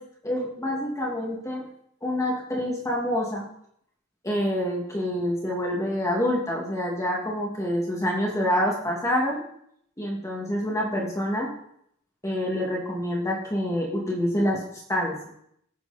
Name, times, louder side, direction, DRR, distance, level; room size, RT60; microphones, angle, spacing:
voice 1, 0.2-1.7 2.0-3.4 4.2-9.4 10.0-11.5 12.2-15.2, equal, 15° left, -3 dB, 2.6 m, -27 dB
17.5 x 8.4 x 4.4 m, 0.71 s
head